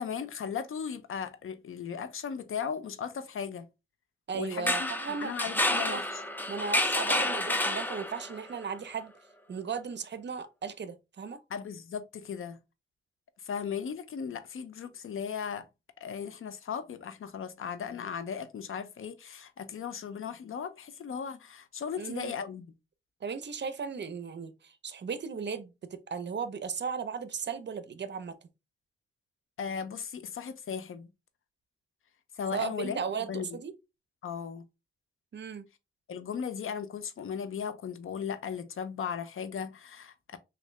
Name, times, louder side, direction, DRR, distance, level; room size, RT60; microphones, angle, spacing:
voice 1, 0.0-3.7 4.3-4.9 5.2-6.2 11.5-12.6 13.4-15.6 16.0-22.6 29.6-31.1 32.4-33.6 34.2-34.6 36.1-40.4, left 7 dB, 80° left, 0.5 m, -37 dB
voice 2, 4.3-5.3 5.7-6.0 6.5-9.1 9.5-11.4 22.0-22.4 23.2-28.4 32.5-33.7 35.3-35.7, right 6 dB, 55° right, 0.5 m, -36 dB
sound 1, 4.5-8.4, left 1 dB, 10° left, 0.5 m, -29 dB
3.5 x 2.5 x 3.1 m
wide cardioid pair, 85°, 21 cm